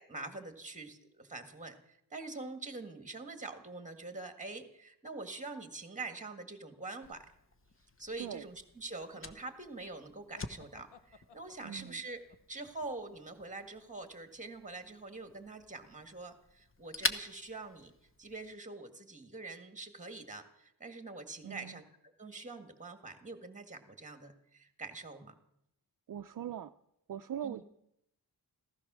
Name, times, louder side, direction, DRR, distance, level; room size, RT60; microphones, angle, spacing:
voice 1, 0.0-7.2 8.0-12.2 12.5-17.9 18.2-25.4 27.4-27.6, right 3 dB, 20° right, 6 dB, 1.8 m, -45 dB
Fire, 7.0-18.5, left 3 dB, 30° left, 1.0 m, -45 dB
sound 1, 10.3-14.0, left 5 dB, 85° left, 0.9 m, -61 dB
voice 2, 11.6-12.0 21.4-21.8 26.1-26.7 27.1-27.6, right 9 dB, 55° right, 8 dB, 0.5 m, -41 dB
15.0 x 15.0 x 6.2 m, 0.79 s
wide cardioid pair, 130°, 40 cm